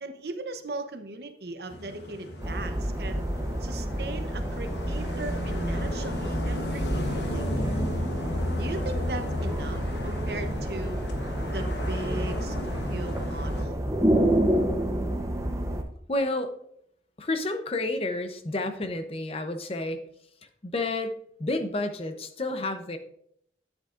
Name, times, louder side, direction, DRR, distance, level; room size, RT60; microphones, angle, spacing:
voice 1, 0.0-3.3 3.6-7.5 8.6-11.0 11.5-13.8, right 2 dB, 60° right, 7 dB, 0.8 m, -38 dB
sound 1, 1.7-13.6, left 1 dB, 75° left, 1.1 m, -34 dB
sound 2, 2.4-15.8, right 1 dB, 15° right, 0.8 m, -29 dB
voice 2, 16.1-16.5 17.2-20.0 20.6-23.0, left 2 dB, 30° left, 8 dB, 0.7 m, -30 dB
11.0 x 8.1 x 2.5 m, 0.71 s
head